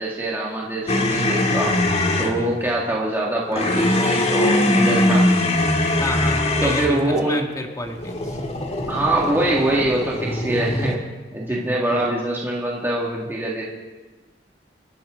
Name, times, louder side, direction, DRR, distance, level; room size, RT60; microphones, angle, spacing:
voice 1, 0.0-1.8 2.2-5.3 6.6-7.5 8.9-11.1 11.3-13.6, right 1 dB, 15° right, -4 dB, 2.0 m, -24 dB
sound 1, 0.9-2.4 3.5-7.0 7.9-11.0, left 1 dB, 40° left, 1.9 m, -21 dB
voice 2, 2.4-2.7 6.0-8.4 11.5-12.1, left 1 dB, 20° left, 3 dB, 1.9 m, -30 dB
28.5 x 12.0 x 3.8 m, 1.3 s
head